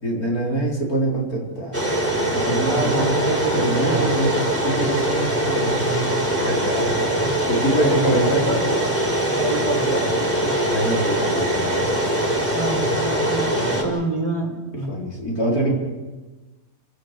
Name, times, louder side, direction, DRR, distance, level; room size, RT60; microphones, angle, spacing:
voice 1, 0.0-1.8 2.2-3.3 3.5-8.5 10.7-11.8 14.9-15.7, right 1 dB, 80° left, -2 dB, 5.1 m, -25 dB
sound 1, 1.7-13.8, right 1 dB, 10° left, 4.7 m, -22 dB
voice 2, 2.7-4.3 7.1-7.4 7.8-8.8 9.3-10.7 12.5-14.9, right 2 dB, 20° right, 2 dB, 4.5 m, -27 dB
29.5 x 18.0 x 6.8 m, 1.2 s
omnidirectional pair, 1.6 m